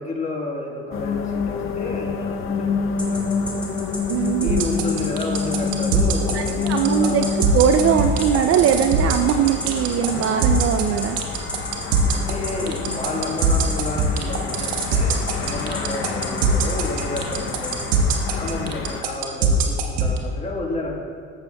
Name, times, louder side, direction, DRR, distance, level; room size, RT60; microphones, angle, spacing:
voice 1, 0.0-3.6 4.4-7.2 12.1-17.9 18.3-21.0, left 2 dB, 20° left, -2 dB, 1.5 m, -31 dB
sound 1, 0.9-19.0, left 5 dB, 35° left, 0.7 m, -28 dB
sound 2, 3.0-18.0, left 1 dB, 5° left, 1.7 m, -33 dB
voice 2, 4.1-4.7 6.3-7.3 7.5-11.2, right 9 dB, 40° right, 6 dB, 0.4 m, -20 dB
sound 3, 4.5-20.2, right 8 dB, 65° right, 1.1 m, -21 dB
14.5 x 6.7 x 2.3 m, 2.2 s
supercardioid pair, 105°, 35 cm